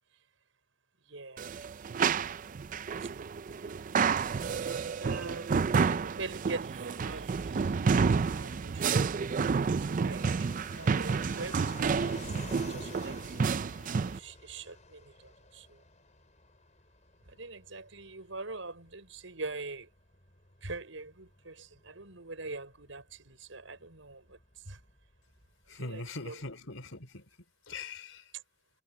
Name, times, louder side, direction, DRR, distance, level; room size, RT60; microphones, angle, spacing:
voice 1, 1.1-1.6 3.0-3.1 5.0-5.6 5.9-10.2 10.8-12.2 12.5-13.2 13.5-15.8 17.3-19.9 20.6-24.4 24.7-24.8 25.9-26.3, right 3 dB, 85° right, 6.0 m, -44 dB
sound 1, 1.4-14.2, right 5 dB, 45° right, 0.4 m, -30 dB
Fixed-wing aircraft airplane, 7.8-26.2, left 3 dB, 40° left, 4.4 m, -53 dB
voice 2, 25.7-27.4 27.7-28.3, left 3 dB, 90° left, 4.0 m, -42 dB
head